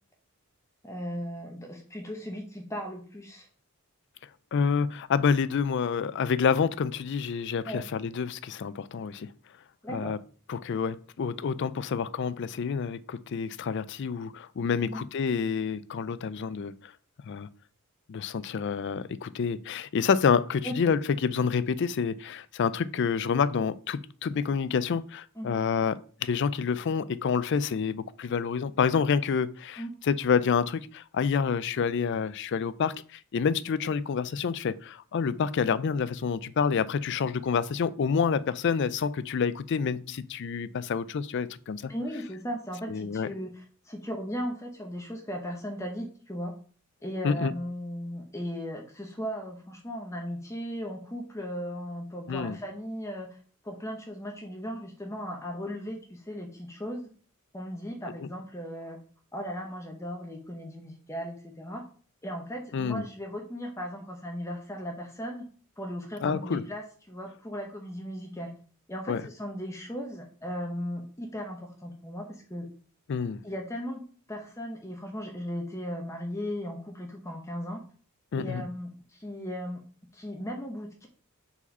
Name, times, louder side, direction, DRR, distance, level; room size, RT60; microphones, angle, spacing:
voice 1, 0.8-3.5 7.7-7.8 9.8-10.1 14.8-15.0 20.6-20.7 25.4-25.6 29.8-29.9 41.8-46.5 47.0-53.4 53.6-57.0 57.5-59.0 59.3-61.8 62.2-65.4 65.8-68.5 68.9-72.7 73.4-74.0 74.3-77.8 78.4-79.8 80.1-81.1, equal, 15° left, 0.8 m, -37 dB
voice 2, 4.5-9.3 9.9-10.2 10.5-16.9 17.3-17.5 18.1-41.9 42.9-43.3 47.2-47.5 52.3-52.6 62.7-63.1 66.2-66.6 69.1-69.2 73.1-73.4 78.3-78.6, left 6 dB, 55° left, 0.4 m, -28 dB
4.9 x 4.2 x 5.4 m
head